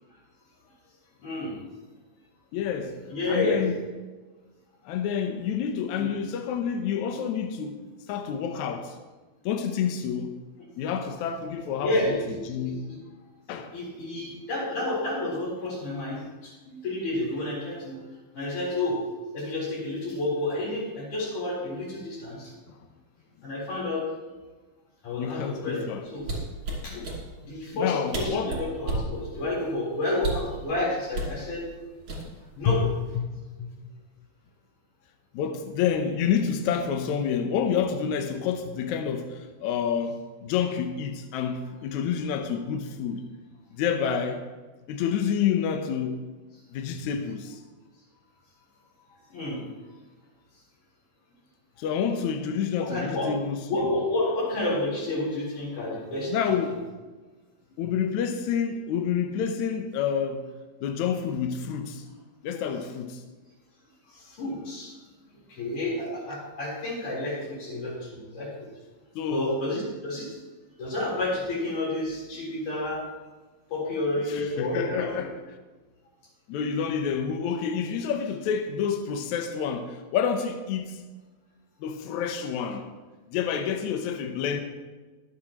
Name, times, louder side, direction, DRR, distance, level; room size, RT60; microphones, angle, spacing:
voice 1, 1.2-1.6 3.1-3.7 6.0-6.1 11.8-12.4 12.7-13.0 13.7-18.0 18.3-19.0 19.3-22.5 23.4-24.0 25.0-26.3 26.8-27.0 27.4-31.7 32.6-32.9 49.3-49.6 52.8-53.3 53.7-56.3 64.1-64.9 65.3-68.7 69.3-70.4 70.8-73.0 73.7-75.3, left 2 dB, 55° left, 5.2 m, -30 dB
voice 2, 2.5-3.0 3.3-3.7 4.8-7.8 8.1-9.0 9.4-10.4 10.8-12.2 12.5-13.0 13.5-13.7 22.7-22.8 25.2-26.0 26.9-27.2 27.7-28.5 33.6-33.7 35.3-43.2 43.7-44.4 44.9-46.3 46.7-47.6 51.8-53.9 56.3-56.8 57.8-60.5 60.8-62.1 62.4-63.2 69.1-69.6 74.3-75.3 76.5-81.0 81.8-82.9 83.3-84.6, left 7 dB, 80° left, 1.7 m, -28 dB
sound 1, 26.2-27.2 27.9-28.0 28.1-29.1 30.2-30.5 31.1-31.4 32.1-32.5 32.9-33.2, right 2 dB, 35° right, 3.2 m, -31 dB
23.0 x 8.7 x 3.0 m
omnidirectional pair, 4.4 m